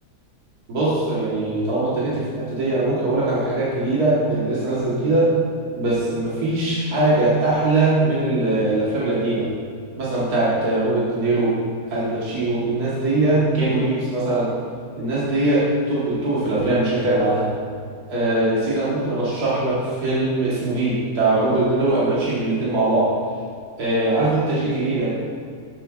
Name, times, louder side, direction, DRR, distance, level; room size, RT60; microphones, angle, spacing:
voice 1, 0.7-5.3 5.8-9.5 10.0-11.6 11.9-14.5 14.9-17.5 18.1-23.1 23.8-25.2, right 2 dB, 80° right, -8 dB, 1.9 m, -21 dB
12.5 x 7.3 x 2.4 m, 2.4 s
omnidirectional pair, 1.6 m